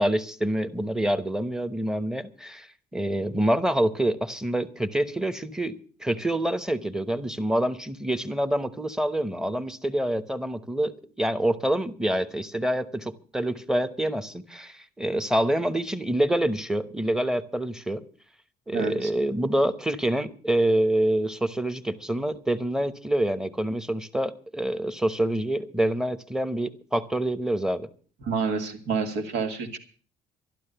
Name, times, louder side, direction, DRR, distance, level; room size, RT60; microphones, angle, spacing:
voice 1, 0.0-2.7 2.9-18.0 18.7-27.9, right 1 dB, 5° right, 13 dB, 1.0 m, -26 dB
voice 2, 18.7-19.1 28.2-29.8, right 5 dB, 80° right, 6 dB, 2.5 m, -28 dB
12.5 x 12.0 x 6.8 m, 0.42 s
cardioid pair, 110°, 17 cm